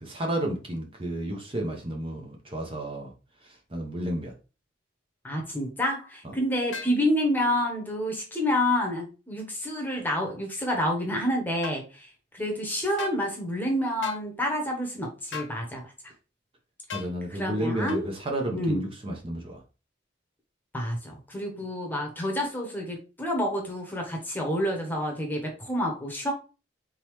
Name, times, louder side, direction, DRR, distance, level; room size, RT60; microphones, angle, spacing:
voice 1, 0.0-3.1 3.4-4.3 16.9-19.6, right 1 dB, 30° right, 1 dB, 0.9 m, -32 dB
voice 2, 5.2-16.1 16.9-17.0 17.3-18.1 18.5-18.9 20.7-26.3, equal, 10° left, 1 dB, 1.1 m, -28 dB
sound 1, 6.7-7.0 11.6-11.8 13.0-13.2 14.0-14.3 15.3-15.6 16.9-17.1 17.9-18.1, left 7 dB, 75° left, 1.2 m, -37 dB
4.1 x 3.8 x 3.1 m, 0.32 s
head